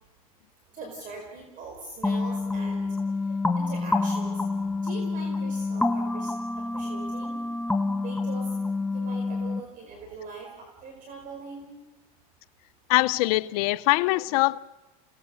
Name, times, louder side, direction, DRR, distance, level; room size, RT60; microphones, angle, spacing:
voice 1, 0.7-2.9 3.6-4.4 4.8-6.3 6.7-7.5 8.0-8.5 8.9-10.5 10.8-11.7, right 3 dB, 45° right, 4.8 m, -41 dB
sound 1, 2.0-9.6, left 3 dB, 5° left, 1.2 m, -28 dB
voice 2, 12.9-14.6, left 21 dB, 75° left, 0.6 m, -23 dB
29.5 x 18.5 x 6.3 m
supercardioid pair, 115°, 19 cm